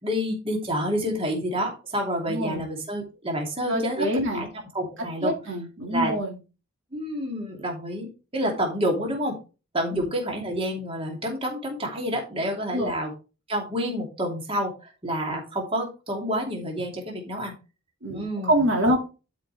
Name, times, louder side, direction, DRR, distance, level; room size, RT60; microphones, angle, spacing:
voice 1, 0.0-4.1 4.3-4.5 4.7-5.3 5.9-6.1 6.9-9.4 9.7-13.1 13.5-17.5 18.1-18.5, equal, 25° right, 0 dB, 2.8 m, -28 dB
voice 2, 2.3-2.6 3.7-4.4 5.2-6.3 9.9-10.0 12.7-12.9 18.0-19.0, equal, 60° right, 1 dB, 2.2 m, -25 dB
12.0 x 5.2 x 3.3 m, 0.31 s
head